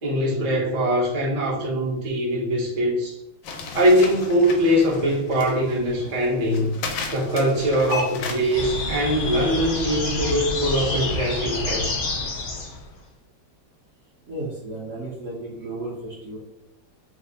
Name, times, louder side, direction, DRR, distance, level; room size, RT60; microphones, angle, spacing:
voice 1, 0.0-3.2 3.7-6.8 7.1-11.9, equal, 35° right, -4 dB, 0.6 m, -22 dB
sound 1, 3.4-8.6, left 4 dB, 90° left, 1.3 m, -34 dB
sound 2, 8.5-12.9, left 3 dB, 60° left, 1.1 m, -28 dB
voice 2, 14.3-16.4, right 2 dB, 55° right, -5 dB, 0.9 m, -34 dB
3.3 x 2.0 x 3.8 m, 0.87 s
omnidirectional pair, 2.0 m